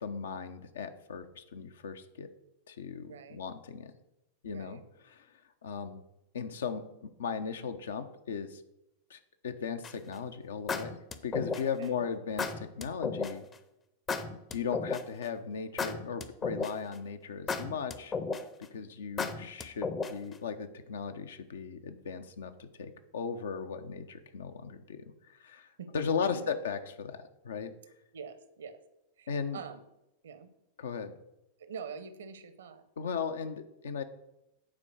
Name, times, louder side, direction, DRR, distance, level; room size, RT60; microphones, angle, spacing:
voice 1, 0.0-2.3 2.7-3.9 4.4-4.8 5.1-5.3 5.6-6.0 6.3-8.6 9.1-11.0 11.2-13.5 14.5-18.2 18.7-25.1 25.4-25.7 25.9-27.7 29.3-29.6 30.8-31.1 33.0-34.0, left 6 dB, 65° left, 9 dB, 0.7 m, -37 dB
voice 2, 3.1-3.4 4.5-4.9 11.6-12.1 25.8-26.6 28.1-28.8 29.2-29.8 30.2-30.5 31.6-32.8, right 6 dB, 65° right, 12 dB, 0.9 m, -45 dB
sound 1, 9.8-10.1 10.7-11.8 12.4-13.3 14.1-15.2 15.8-16.9 17.5-18.6 19.2-20.3, left 4 dB, 20° left, 0.7 m, -33 dB
8.7 x 4.5 x 6.4 m, 0.88 s
figure-of-eight pair, 90°, 0 cm